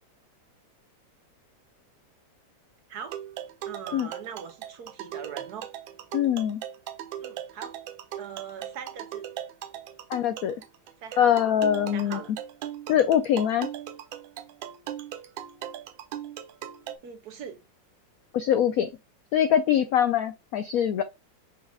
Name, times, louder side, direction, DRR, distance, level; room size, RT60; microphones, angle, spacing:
sound 1, 3.1-17.0, right 11 dB, 85° right, 1.3 m, -39 dB
voice 1, 3.7-5.7 7.2-7.8 8.2-9.3 11.0-11.4 11.9-12.3 17.0-17.6, right 7 dB, 65° right, 1.1 m, -41 dB
voice 2, 6.1-6.6 10.1-10.6 11.2-12.2 12.9-13.7 18.3-18.9 19.3-21.0, left 9 dB, 80° left, 0.8 m, -23 dB
6.4 x 2.3 x 3.4 m
omnidirectional pair, 2.1 m